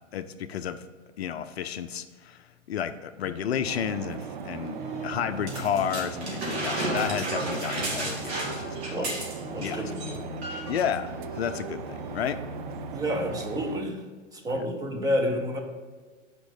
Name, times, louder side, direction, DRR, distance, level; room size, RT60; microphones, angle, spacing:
voice 1, 0.1-0.8 1.2-9.1 9.6-9.9 10.7-11.1 11.4-12.4 14.5-14.6, left 9 dB, 55° left, 10 dB, 0.5 m, -32 dB
sound 1, 3.2-13.9, left 1 dB, 15° left, 1.8 m, -41 dB
sound 2, 3.6-13.8, right 8 dB, 40° right, 0.4 m, -39 dB
sound 3, 5.5-9.7 9.9-10.1 10.4-10.8 11.6-11.7, right 2 dB, 55° right, 2.7 m, -32 dB
voice 2, 9.5-10.2 12.9-14.0 14.4-15.6, equal, 10° right, 3 dB, 0.7 m, -29 dB
8.7 x 5.3 x 5.3 m, 1.5 s
figure-of-eight pair, 110°, 38 cm